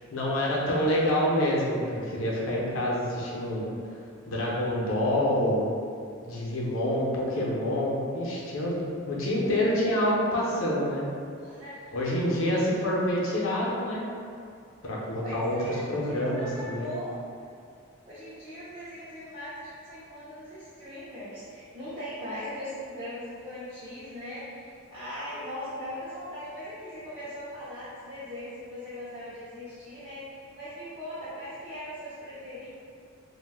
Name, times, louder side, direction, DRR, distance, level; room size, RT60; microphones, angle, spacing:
voice 1, 0.1-3.6 4.3-5.7 6.3-8.8 9.1-11.0 11.9-14.0 14.8-16.9, left 1 dB, 75° left, -4 dB, 0.6 m, -27 dB
voice 2, 11.4-12.0 15.2-17.2 18.1-32.7, left 1 dB, 20° right, -13 dB, 0.5 m, -40 dB
2.5 x 2.1 x 3.4 m, 2.3 s
head